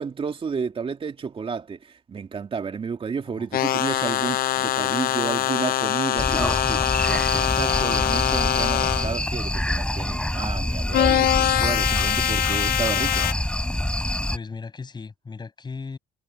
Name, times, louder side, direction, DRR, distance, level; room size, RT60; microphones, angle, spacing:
voice 1, 0.0-13.3, right 6 dB, 35° right, 2.5 m, -31 dB
sound 1, 3.5-9.2 10.9-13.3, left 13 dB, 60° left, 0.7 m, -23 dB
sound 2, 6.2-14.4, left 1 dB, 5° left, 6.2 m, -26 dB
voice 2, 14.3-16.0, left 4 dB, 25° left, 6.4 m, -37 dB
cardioid pair, 110°, 17 cm